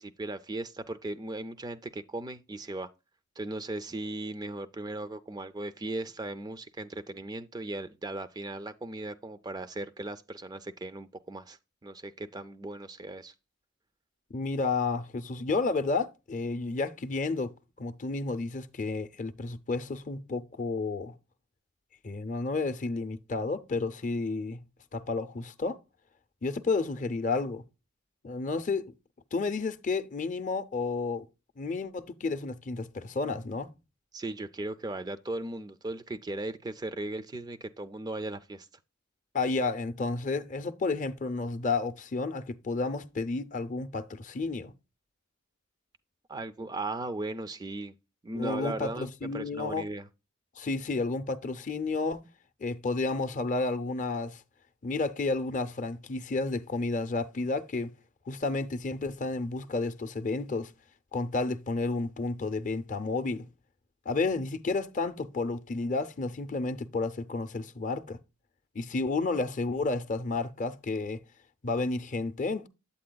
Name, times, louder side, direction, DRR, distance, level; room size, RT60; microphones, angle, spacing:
voice 1, 0.0-2.9 3.4-13.3 34.1-38.7 46.3-47.9 48.2-50.1, right 2 dB, 20° right, 0.3 m, -37 dB
voice 2, 14.3-21.1 22.0-24.6 24.9-25.8 26.4-27.6 28.2-28.9 29.3-31.2 31.6-33.7 39.3-44.7 48.4-49.8 50.6-52.2 52.6-54.4 54.8-57.9 58.3-60.7 61.1-63.4 64.1-68.2 68.7-71.2 71.6-72.7, left 3 dB, 40° left, 0.5 m, -31 dB
8.4 x 8.3 x 2.2 m
head